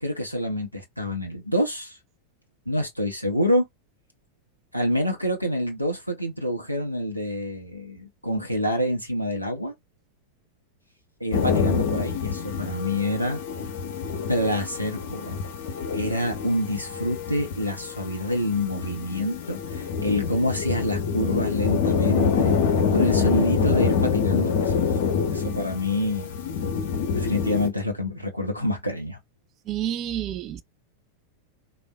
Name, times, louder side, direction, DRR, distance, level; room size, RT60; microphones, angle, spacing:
voice 1, 0.0-2.0 2.7-3.7 4.7-9.7 11.2-13.4 14.3-15.4 15.9-22.6 22.9-24.9 25.3-26.3 27.1-29.2, left 1 dB, 90° right, 0.6 m, -27 dB
sound 1, 11.3-27.7, left 6 dB, 55° left, 0.7 m, -26 dB
voice 2, 29.7-30.6, right 11 dB, 35° right, 0.3 m, -29 dB
3.4 x 2.1 x 2.2 m
figure-of-eight pair, 90°, 0 cm